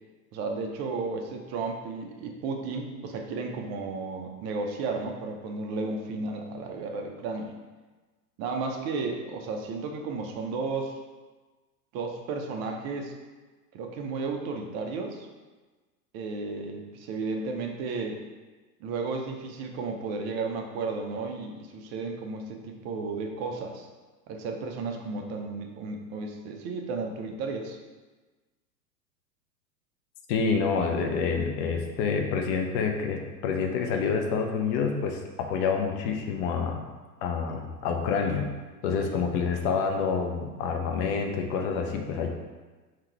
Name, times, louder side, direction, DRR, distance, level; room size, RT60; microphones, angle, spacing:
voice 1, 0.3-7.5 8.4-10.9 11.9-13.1 13.7-15.3 16.1-18.2 18.8-23.9 24.3-27.8, right 4 dB, 30° right, 3 dB, 0.6 m, -33 dB
voice 2, 30.3-36.8 37.2-38.5 38.8-42.3, left 5 dB, 25° left, 3 dB, 0.4 m, -27 dB
3.7 x 2.9 x 4.5 m, 1.3 s
hypercardioid pair, 100°, 49 cm